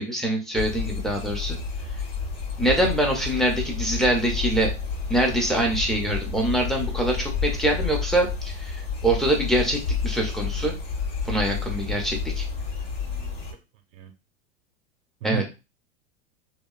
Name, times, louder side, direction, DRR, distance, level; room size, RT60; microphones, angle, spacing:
voice 1, 0.0-1.6 2.6-4.7 5.1-10.7 11.3-12.5 15.2-15.4, right 1 dB, ahead, 0.3 m, -24 dB
sound 1, 0.5-13.5, left 5 dB, 50° left, 1.4 m, -30 dB
voice 2, 12.6-13.3 13.9-14.1 15.2-15.4, right 11 dB, 75° right, 0.6 m, -35 dB
2.9 x 2.2 x 2.3 m
hypercardioid pair, 115°, 39 cm